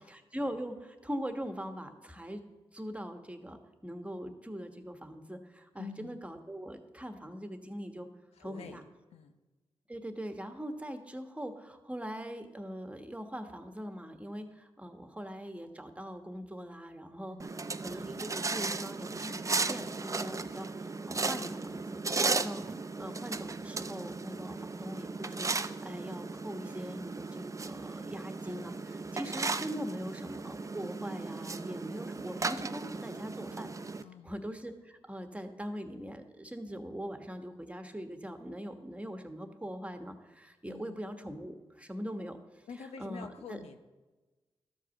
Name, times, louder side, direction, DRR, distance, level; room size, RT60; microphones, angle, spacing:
voice 1, 0.0-2.4 2.7-8.1 8.4-8.8 9.9-22.7 22.9-33.7 34.2-42.6 43.0-43.6, equal, 10° right, 6 dB, 1.4 m, -42 dB
voice 2, 5.8-6.2 8.3-8.8 9.1-9.4 17.3-17.5 34.0-34.3 40.7-41.0 42.7-43.8, left 6 dB, 85° left, 7 dB, 0.7 m, -47 dB
sound 1, 17.4-34.0, right 3 dB, 30° right, 0.5 m, -36 dB
12.5 x 4.9 x 7.1 m, 1.2 s
supercardioid pair, 45°, 10 cm